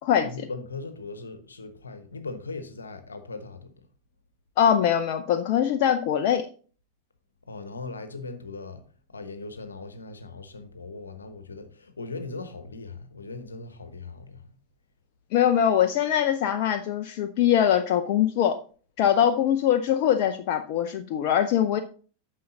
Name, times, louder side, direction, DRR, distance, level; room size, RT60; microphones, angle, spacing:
voice 1, 0.2-3.7 7.5-8.8 9.1-14.5, left 3 dB, 75° left, 1.2 m, -39 dB
voice 2, 4.6-6.5 15.3-18.6 19.0-21.8, left 9 dB, 45° left, 0.6 m, -22 dB
9.4 x 6.5 x 4.0 m
figure-of-eight pair, 90°, 0 cm